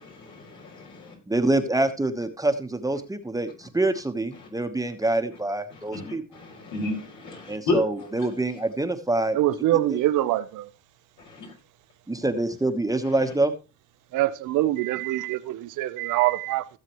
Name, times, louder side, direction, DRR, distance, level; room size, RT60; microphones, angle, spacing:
voice 1, 0.0-1.1 5.7-8.1 11.2-11.5, left 2 dB, 75° left, 5.5 m, -32 dB
voice 2, 1.3-6.2 7.5-9.4 9.9-10.0 12.1-13.5, right 2 dB, 10° right, 1.1 m, -26 dB
voice 3, 9.3-10.7 14.1-16.7, right 15 dB, 85° right, 0.8 m, -24 dB
16.5 x 7.6 x 3.1 m
cardioid pair, 90°, 30 cm